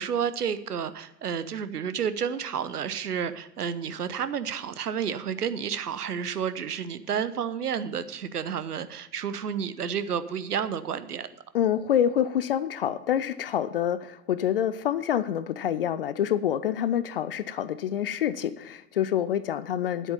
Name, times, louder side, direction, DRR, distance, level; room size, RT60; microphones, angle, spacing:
voice 1, 0.0-11.3, right 7 dB, 70° right, 13 dB, 0.9 m, -31 dB
voice 2, 11.5-20.1, left 10 dB, 40° left, 16 dB, 0.4 m, -27 dB
10.0 x 8.2 x 5.5 m, 0.91 s
figure-of-eight pair, 95°, 48 cm